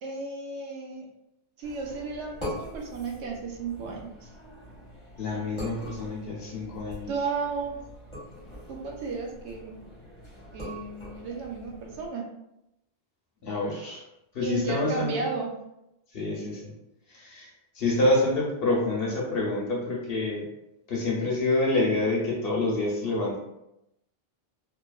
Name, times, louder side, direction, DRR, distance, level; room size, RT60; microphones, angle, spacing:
voice 1, 0.0-1.1 1.6-4.3 7.1-7.8 8.7-9.8 10.5-12.2 14.4-15.5, right 4 dB, 80° right, 1 dB, 0.9 m, -33 dB
sound 1, 1.6-12.1, equal, 25° left, 1.0 m, -43 dB
voice 2, 5.2-7.1 13.4-14.0 14.3-15.1 16.1-16.7 17.2-17.5 17.8-20.4 20.9-23.4, left 2 dB, 60° left, -3 dB, 0.9 m, -27 dB
2.7 x 2.4 x 2.2 m, 0.86 s
omnidirectional pair, 1.1 m